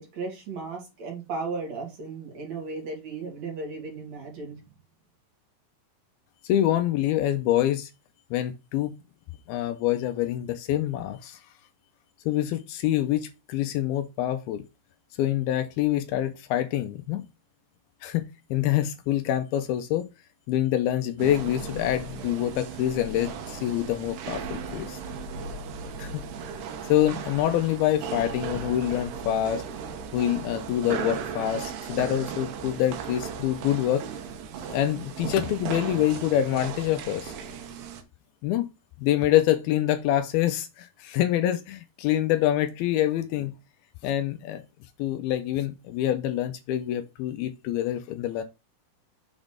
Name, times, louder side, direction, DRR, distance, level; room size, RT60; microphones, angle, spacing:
voice 1, 0.0-4.6, right 4 dB, 50° right, 3.1 m, -35 dB
voice 2, 6.4-7.9 8.3-8.9 9.5-11.4 12.3-14.6 15.2-17.3 18.0-20.1 20.5-25.0 26.0-26.1 26.8-29.6 30.1-34.1 34.7-37.3 38.4-38.7 39.0-43.5 44.0-44.6 45.0-48.4, left 12 dB, 80° left, 2.4 m, -26 dB
sound 1, 21.2-38.0, right 6 dB, 80° right, 3.1 m, -36 dB
7.1 x 4.0 x 5.0 m
omnidirectional pair, 4.6 m